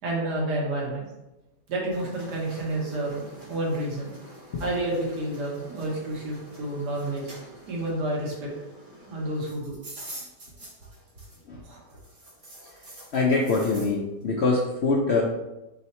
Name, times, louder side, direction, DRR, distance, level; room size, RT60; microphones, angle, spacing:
voice 1, 0.0-1.1 1.7-4.1 4.6-7.4 7.7-8.5 9.1-9.7 11.6-11.8, right 1 dB, 80° right, -3 dB, 1.8 m, -30 dB
sound 1, 1.9-11.6 11.9-14.0, right 1 dB, 40° right, 0.7 m, -46 dB
voice 2, 13.1-15.2, left 3 dB, 65° left, -2 dB, 0.7 m, -24 dB
4.2 x 3.9 x 2.9 m, 0.97 s
omnidirectional pair, 1.7 m